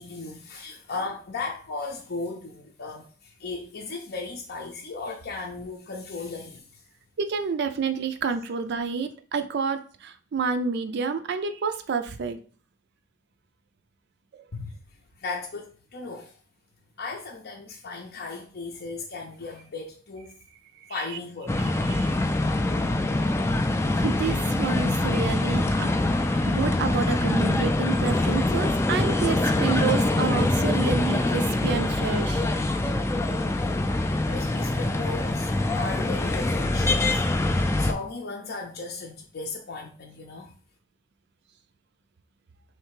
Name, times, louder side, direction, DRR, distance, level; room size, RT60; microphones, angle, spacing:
voice 1, 0.0-6.8 14.5-14.8 15.2-16.3 17.0-20.3 20.9-21.7 33.6-33.7 34.2-40.5, left 3 dB, 50° left, 0.6 m, -36 dB
voice 2, 7.2-12.4 14.3-14.4 20.9-21.0 21.8-22.1 23.9-32.5, right 5 dB, 55° right, 0.4 m, -29 dB
sound 1, 21.5-37.9, left 2 dB, 15° left, 0.3 m, -24 dB
3.3 x 3.2 x 4.7 m
head